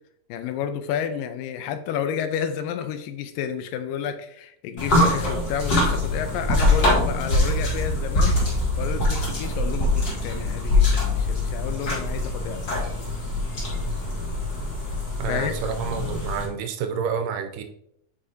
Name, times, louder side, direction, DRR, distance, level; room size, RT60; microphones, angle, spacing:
voice 1, 0.3-8.5 8.8-12.8 15.3-15.5, left 8 dB, 85° left, 9 dB, 2.3 m, -31 dB
sound 1, 4.8-16.5, left 2 dB, 40° left, 1.5 m, -23 dB
voice 2, 15.2-17.6, right 7 dB, 80° right, 6 dB, 2.2 m, -29 dB
7.8 x 4.8 x 2.8 m, 0.73 s
omnidirectional pair, 3.9 m